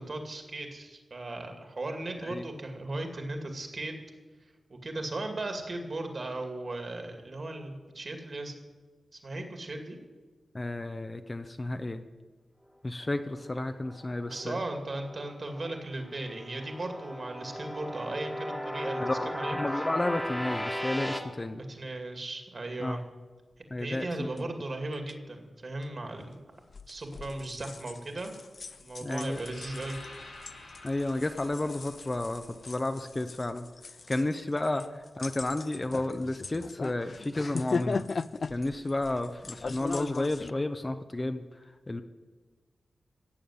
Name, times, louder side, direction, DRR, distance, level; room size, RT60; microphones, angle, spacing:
voice 1, 0.0-3.9 4.7-8.5 9.1-10.0 14.2-19.1 19.3-19.9 21.7-23.0 23.8-26.4 26.9-28.3 28.8-30.0 34.7-34.9 39.1-39.2, right 2 dB, 45° right, 4 dB, 2.3 m, -37 dB
voice 2, 10.5-12.0 12.8-14.6 19.0-21.6 22.8-23.0 23.7-24.1 24.3-24.5 29.0-29.5 30.8-33.7 34.1-38.1 38.5-41.4 41.9-42.0, left 2 dB, 25° left, 8 dB, 0.7 m, -32 dB
sound 1, 13.4-15.8 16.1-21.2, equal, 5° left, 1.5 m, -36 dB
sound 2, 24.4-24.5 24.9-25.1 25.8-25.9 26.7-40.5, left 4 dB, 50° left, 0.3 m, -38 dB
sound 3, 29.1-33.2, left 2 dB, 80° left, 4.6 m, -49 dB
15.5 x 7.0 x 9.4 m, 1.3 s
wide cardioid pair, 100°, 0 cm